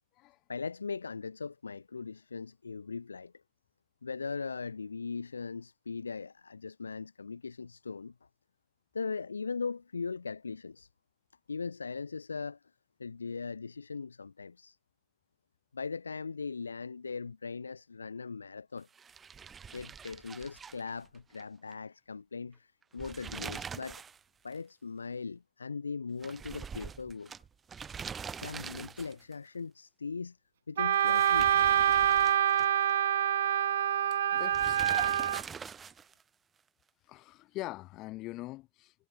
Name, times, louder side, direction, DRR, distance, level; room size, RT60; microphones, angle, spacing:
voice 1, 0.5-3.3 4.0-8.1 8.9-10.9 11.5-12.6 13.0-14.8 15.7-18.9 19.7-24.0 24.4-27.3 28.4-30.4 30.7-31.5, left 5 dB, 75° left, 0.6 m, -39 dB
sound 1, 18.9-21.4 21.7-21.8 22.8-24.2 24.5-24.6 26.2-29.3 30.9-32.9 34.5-36.2, right 6 dB, 20° right, 0.7 m, -44 dB
Wind instrument woodwind instrument, 30.8-35.4, right 10 dB, 60° right, 0.4 m, -26 dB
voice 2, 34.1-35.1 37.1-38.9, left 18 dB, 40° left, 3.8 m, -43 dB
figure-of-eight pair, 90°, 0 cm